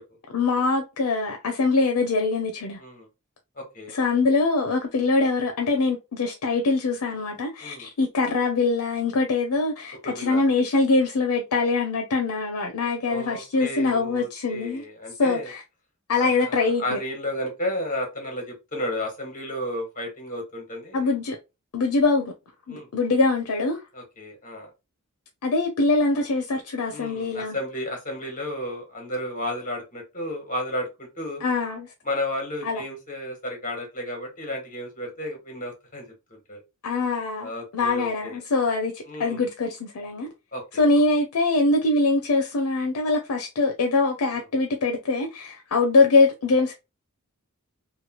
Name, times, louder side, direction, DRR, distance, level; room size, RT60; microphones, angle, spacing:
voice 1, 0.3-2.8 3.9-14.8 15.2-15.6 16.1-17.0 20.9-21.4 21.7-22.3 22.7-23.8 25.4-27.6 31.4-31.9 32.6-32.8 36.8-40.3 40.7-46.7, left 3 dB, 80° left, 0.5 m, -23 dB
voice 2, 3.6-3.9 7.6-7.9 10.0-10.4 13.0-15.5 16.2-21.1 22.7-22.9 23.9-24.7 26.9-31.4 32.0-36.0 36.3-36.6 37.4-38.4 39.1-39.4 40.5-40.8 44.3-44.5, left 1 dB, 40° left, 1.3 m, -33 dB
3.1 x 2.2 x 2.9 m
head